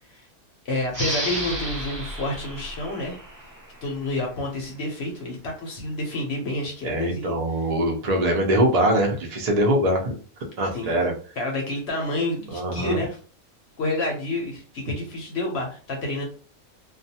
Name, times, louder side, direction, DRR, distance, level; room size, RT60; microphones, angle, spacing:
voice 1, 0.6-3.5 3.8-7.3 10.7-10.9 11.4-13.2 13.8-16.2, left 2 dB, 55° left, 1 dB, 0.8 m, -29 dB
sound 1, 0.9-4.2, equal, 20° right, 0.5 m, -32 dB
voice 2, 6.8-10.1 10.6-11.1 12.5-13.0, right 1 dB, 80° right, 2 dB, 0.3 m, -22 dB
2.4 x 2.2 x 2.7 m, 0.39 s
omnidirectional pair, 1.6 m